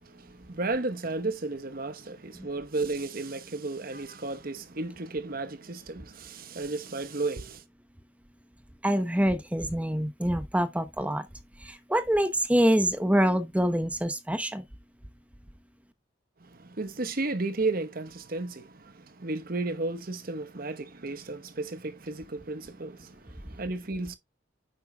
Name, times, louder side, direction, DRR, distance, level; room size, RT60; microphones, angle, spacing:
voice 1, 0.0-7.6 16.4-24.2, right 3 dB, 50° right, 1.0 m, -33 dB
voice 2, 8.8-11.3 11.6-14.6, equal, 5° right, 0.7 m, -25 dB
9.5 x 7.5 x 2.3 m
head